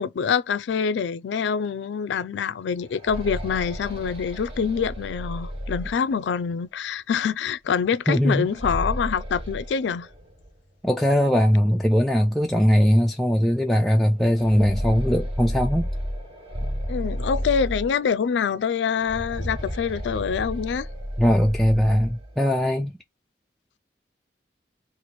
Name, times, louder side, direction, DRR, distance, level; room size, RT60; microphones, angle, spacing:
voice 1, 0.0-10.1 16.9-20.9, left 6 dB, 90° left, 0.4 m, -25 dB
sound 1, 2.7-6.5 8.3-10.5 10.8-10.9 11.8-11.9 12.4-12.5 14.1-18.3 19.0-22.4, equal, 35° right, 1.1 m, -32 dB
voice 2, 8.1-8.5 10.8-15.9 21.2-22.9, equal, ahead, 0.3 m, -20 dB
3.0 x 2.5 x 4.0 m
head